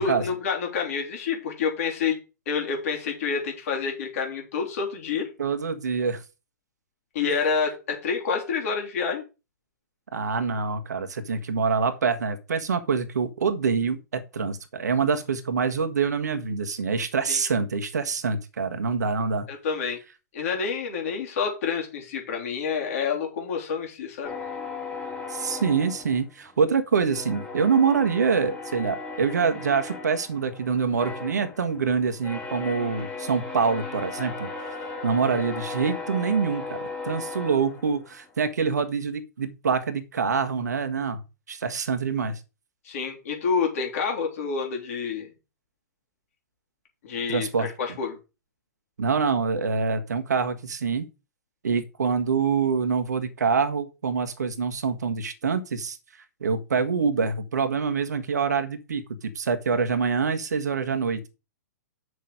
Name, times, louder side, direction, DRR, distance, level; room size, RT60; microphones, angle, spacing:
voice 1, 0.0-2.2 2.5-5.3 7.1-9.2 17.3-17.4 19.5-20.0 20.3-24.3 42.9-45.3 47.0-48.2, left 5 dB, 50° left, 3.6 m, -28 dB
voice 2, 5.4-6.2 10.1-19.5 25.3-34.5 35.0-41.2 41.5-42.4 47.3-48.0 49.0-51.1 51.6-56.0 56.4-61.3, right 5 dB, 70° right, 1.5 m, -25 dB
sound 1, 24.2-26.7 27.1-38.3, left 3 dB, 10° left, 2.5 m, -37 dB
8.0 x 6.5 x 5.0 m
figure-of-eight pair, 115°, 10 cm